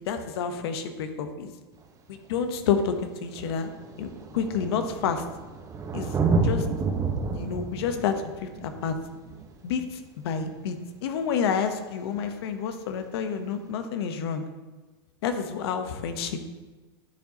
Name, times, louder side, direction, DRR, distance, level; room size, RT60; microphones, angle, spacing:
voice 1, 0.1-1.5 2.1-3.7 4.0-5.2 5.9-6.7 7.3-8.9 9.6-10.8 11.0-14.4 15.2-16.4, left 6 dB, 70° left, 8 dB, 0.9 m, -29 dB
Thunder, 1.8-1.9 2.9-3.0 3.2-10.5 12.2-12.3, right 4 dB, 25° right, 1.0 m, -30 dB
11.0 x 6.9 x 2.9 m, 1.2 s
hypercardioid pair, 110°, 14 cm